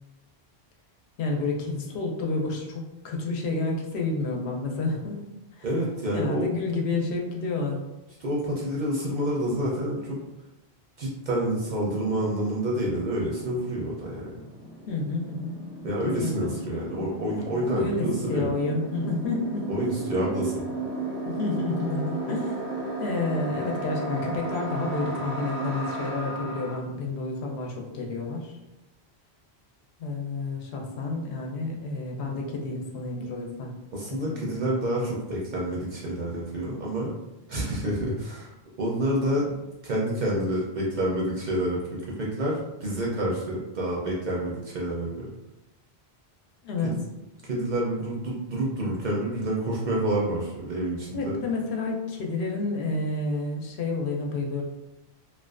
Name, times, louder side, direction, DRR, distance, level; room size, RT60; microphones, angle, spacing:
voice 1, 1.2-5.2 5.6-5.7 6.1-7.8 14.9-15.6 16.0-16.5 17.7-19.7 21.3-22.6 23.0-28.6 30.0-33.7 34.1-34.4 46.6-46.9 51.1-54.6, left 3 dB, 80° left, 1 dB, 0.8 m, -30 dB
voice 2, 5.6-6.4 8.2-10.2 11.0-14.3 15.8-18.5 19.7-20.5 33.9-37.1 37.5-38.5 38.8-39.6 39.8-45.3 46.8-46.9 47.5-51.4, right 1 dB, 55° right, -4 dB, 0.6 m, -28 dB
sound 1, 11.2-11.3 11.5-26.8, right 2 dB, 40° left, 0.7 m, -35 dB
2.4 x 2.2 x 2.3 m, 0.97 s
omnidirectional pair, 1.1 m